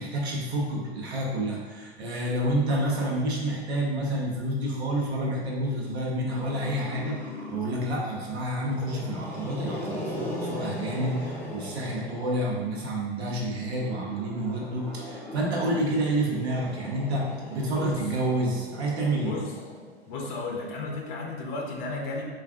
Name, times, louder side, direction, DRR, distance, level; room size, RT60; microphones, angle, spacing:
voice 1, 0.0-7.2 7.5-19.4, right 1 dB, 75° right, -3 dB, 0.8 m, -29 dB
Growling, 6.3-8.0 8.6-12.7 13.7-20.2, left 1 dB, 5° left, 0.4 m, -38 dB
voice 2, 19.0-19.5 20.1-22.2, left 3 dB, 50° left, 0 dB, 0.6 m, -33 dB
3.2 x 2.4 x 2.5 m, 1.4 s
hypercardioid pair, 100°, 32 cm